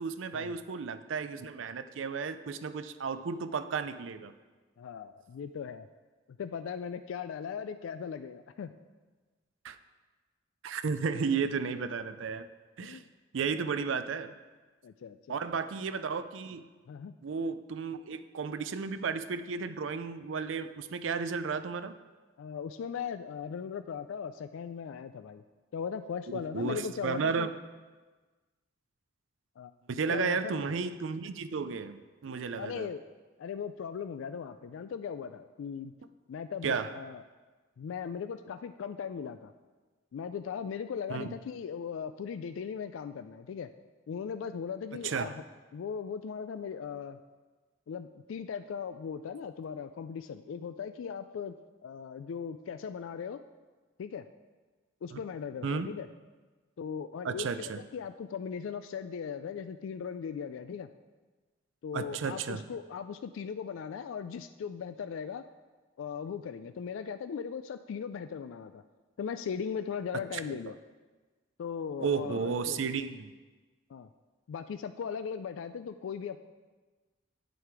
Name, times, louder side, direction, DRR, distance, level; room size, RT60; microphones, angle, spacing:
voice 1, 0.0-4.3 9.6-9.8 10.6-12.5 12.8-13.0 13.3-14.3 15.3-16.7 17.2-21.9 26.5-27.5 29.9-32.9 36.6-36.9 41.1-41.3 45.0-45.3 55.1-55.2 55.6-55.9 57.2-57.8 61.9-62.7 70.5-70.6 72.0-73.3, right 5 dB, 70° right, 11 dB, 0.4 m, -33 dB
voice 2, 4.8-5.9 6.4-8.7 12.8-13.1 14.8-15.4 16.9-17.1 22.4-25.4 25.7-27.5 29.6-29.7 30.1-30.6 32.6-33.0 33.4-35.9 36.3-37.2 37.8-39.5 40.1-43.7 44.1-45.4 45.7-47.2 47.9-51.5 51.8-53.4 54.0-54.2 55.0-56.1 56.8-60.9 61.8-65.4 66.0-68.8 69.2-70.8 71.6-72.9 73.9-74.1 74.5-76.4, left 6 dB, 75° left, 10 dB, 0.3 m, -38 dB
8.4 x 7.7 x 4.7 m, 1.3 s
head